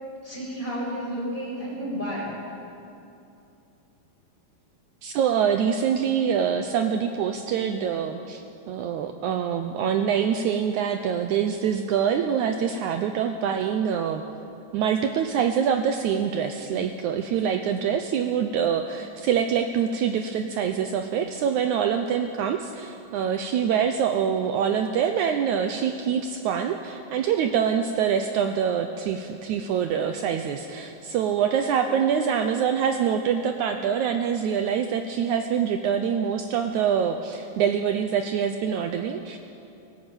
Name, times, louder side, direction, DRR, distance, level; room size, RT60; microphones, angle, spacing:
voice 1, 0.2-2.3 31.3-31.6, equal, 15° left, -5 dB, 6.7 m, -32 dB
voice 2, 5.0-8.4 8.7-14.2 14.7-39.4, right 8 dB, 75° right, 7 dB, 1.8 m, -25 dB
17.5 x 17.0 x 8.8 m, 2.7 s
omnidirectional pair, 4.1 m